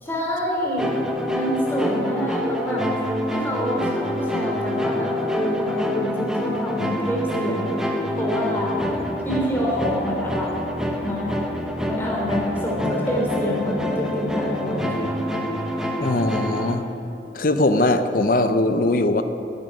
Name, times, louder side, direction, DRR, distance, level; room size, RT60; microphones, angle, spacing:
voice 1, 0.0-2.8 3.3-7.7 8.2-8.8 9.2-10.6 10.9-11.4 11.9-15.0, equal, 15° left, -3 dB, 3.2 m, -27 dB
sound 1, 0.8-16.7, left 1 dB, 5° right, 1.1 m, -26 dB
voice 2, 16.0-16.9 17.3-19.2, left 2 dB, 50° left, 9 dB, 0.7 m, -20 dB
11.0 x 9.2 x 9.9 m, 3.0 s
head